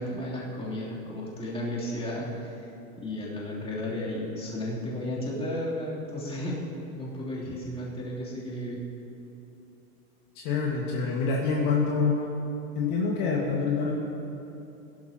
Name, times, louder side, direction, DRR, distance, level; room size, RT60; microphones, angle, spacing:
voice 1, 0.0-2.7 3.0-6.6 7.0-8.8, left 1 dB, 15° left, -7 dB, 3.1 m, -33 dB
voice 2, 10.4-12.2 12.8-13.9, left 4 dB, 45° left, -3 dB, 1.9 m, -26 dB
22.5 x 11.5 x 2.9 m, 2.8 s
supercardioid pair, 135°, 45 cm